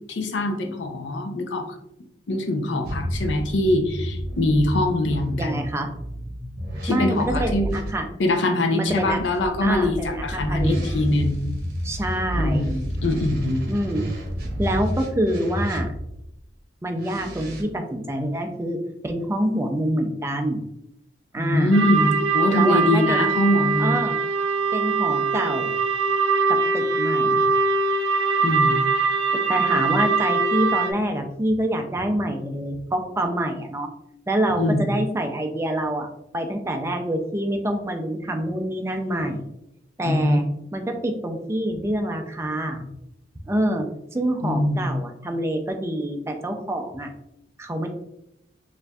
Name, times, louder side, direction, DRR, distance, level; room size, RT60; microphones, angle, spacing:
voice 1, 0.1-1.7 2.3-5.6 6.8-7.7 8.2-11.4 12.3-13.6 21.4-24.0 28.4-28.8 34.6-34.9 40.0-40.4 44.4-44.9, left 1 dB, 80° left, 4 dB, 0.6 m, -23 dB
sound 1, 2.8-7.9 8.9-16.2 16.9-17.6, equal, 55° right, 0.9 m, -30 dB
voice 2, 5.4-5.9 6.9-8.0 8.7-9.2 9.6-10.8 11.8-12.7 13.6-14.1 14.6-15.9 16.8-20.6 21.3-21.8 22.5-23.3 23.8-24.2 24.7-25.7 26.5-27.4 29.5-33.9 34.3-39.5 40.0-40.4 40.7-42.9 43.5-43.9 44.1-47.1 47.6-47.9, right 1 dB, 15° right, 4 dB, 0.4 m, -26 dB
sound 2, 21.7-30.9, right 4 dB, 85° right, 0.4 m, -22 dB
4.4 x 2.6 x 2.3 m, 0.82 s
head